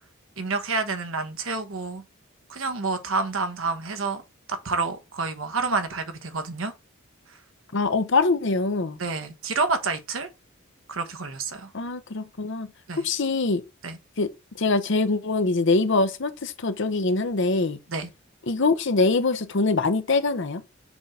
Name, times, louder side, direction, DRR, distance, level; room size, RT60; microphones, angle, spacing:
voice 1, 0.4-2.0 2.5-4.2 4.5-6.7 9.0-10.3 10.9-11.7 12.9-13.1 13.8-14.0 17.9-18.1, right 4 dB, 65° right, 1.2 m, -28 dB
voice 2, 7.7-9.0 11.7-12.7 13.0-13.6 14.2-17.8 18.5-20.6, left 3 dB, 55° left, 0.7 m, -23 dB
6.1 x 3.7 x 5.6 m
head